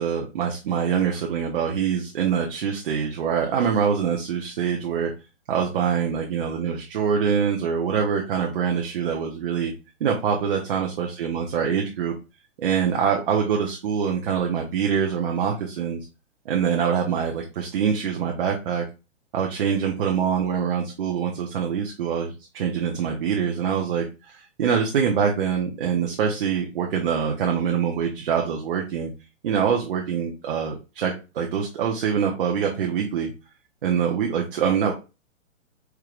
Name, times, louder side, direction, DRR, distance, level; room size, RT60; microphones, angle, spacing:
voice 1, 0.0-5.1 5.5-9.7 10.0-12.2 12.6-16.0 16.5-18.8 19.3-29.1 29.4-33.3 33.8-34.9, right 7 dB, 45° right, 0 dB, 0.9 m, -24 dB
4.6 x 3.3 x 2.4 m, 0.29 s
hypercardioid pair, 160°, 37 cm